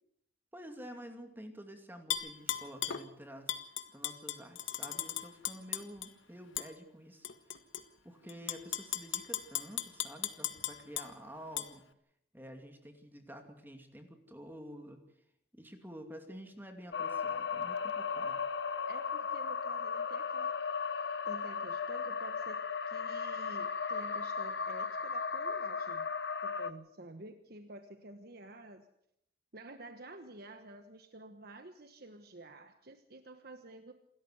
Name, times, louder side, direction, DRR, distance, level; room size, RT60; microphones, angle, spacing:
voice 1, 0.5-3.6 3.9-7.3 8.0-11.9 12.3-15.0 15.5-18.4, equal, 10° right, 5 dB, 2.5 m, -49 dB
Tap / Glass, 2.1-3.0 3.5-6.1 6.6-6.7 7.2-7.8 8.3-11.1 11.6-11.7, left 11 dB, 90° left, 1.6 m, -36 dB
sound 1, 16.9-26.7, left 5 dB, 60° left, 1.1 m, -36 dB
voice 2, 18.9-20.5 21.2-26.1 26.4-28.9 29.5-33.9, right 2 dB, 55° right, 7 dB, 1.3 m, -50 dB
28.0 x 13.5 x 8.1 m, 0.77 s
head